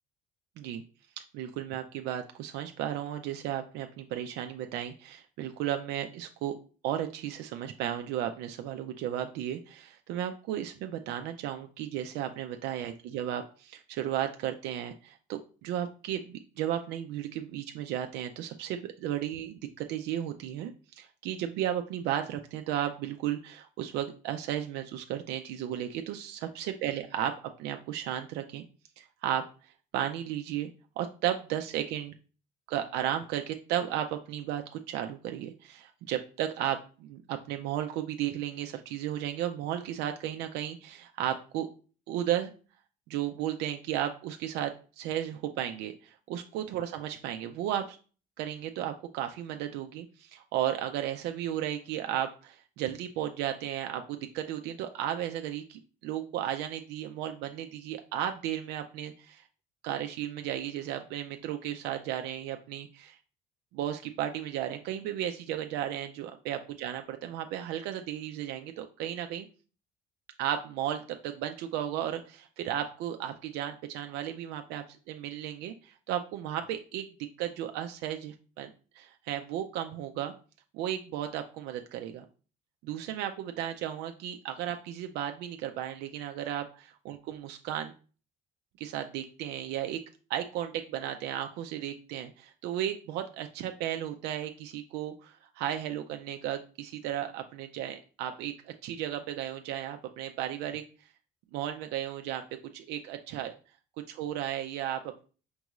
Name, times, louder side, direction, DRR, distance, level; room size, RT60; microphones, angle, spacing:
voice 1, 1.3-6.5 6.8-27.3 27.6-28.6 29.0-29.4 29.9-30.7 31.0-32.1 32.7-41.7 42.1-42.5 43.1-48.0 48.4-59.4 59.8-63.2 63.7-69.5 70.4-77.1 77.4-80.3 80.7-82.2 82.8-87.9 88.8-90.0 90.3-100.8 101.5-102.4 102.7-103.5 104.1-105.2, right 11 dB, 90° right, 6 dB, 0.4 m, -34 dB
5.3 x 2.4 x 3.0 m, 0.37 s
cardioid pair, 110°, 17 cm